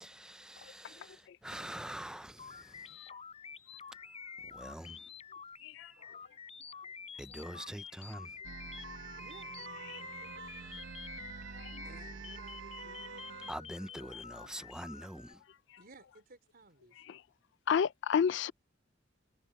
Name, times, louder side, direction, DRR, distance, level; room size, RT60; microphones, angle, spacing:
voice 1, 0.0-2.9 4.4-5.0 7.2-8.4 13.5-15.4, right 1 dB, 5° right, 0.5 m, -45 dB
sound 1, 2.4-15.3, left 6 dB, 35° left, 4.4 m, -49 dB
sound 2, 8.4-13.5, right 5 dB, 75° right, 0.9 m, -46 dB
voice 2, 9.2-10.9 11.3-11.5 11.8-13.2 14.1-14.4 15.8-17.2, right 2 dB, 50° right, 4.4 m, -59 dB
voice 3, 17.7-18.5, left 7 dB, 65° left, 0.3 m, -29 dB
head